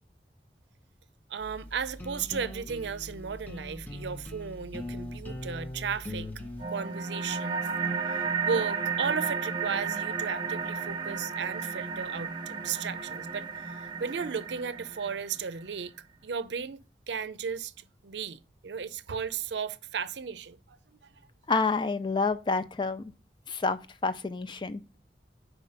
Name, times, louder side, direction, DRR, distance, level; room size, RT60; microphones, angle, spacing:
voice 1, 1.3-6.3 6.7-7.7 8.1-15.9 16.2-17.7 18.0-21.1, right 6 dB, 90° right, 0.5 m, -35 dB
sound 1, 1.4-6.6, left 1 dB, 10° left, 0.8 m, -40 dB
sound 2, 6.6-15.6, right 5 dB, 25° right, 0.8 m, -33 dB
voice 2, 21.5-23.1 23.5-24.8, left 4 dB, 25° left, 0.4 m, -28 dB
5.0 x 4.9 x 5.4 m
head